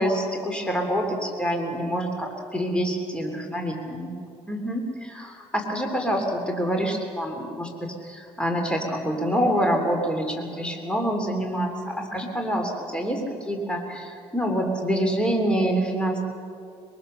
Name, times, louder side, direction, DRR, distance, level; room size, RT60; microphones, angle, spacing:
voice 1, 0.0-16.2, equal, 10° left, 2 dB, 3.2 m, -26 dB
23.0 x 23.0 x 6.8 m, 2.5 s
cardioid pair, 110°, 12 cm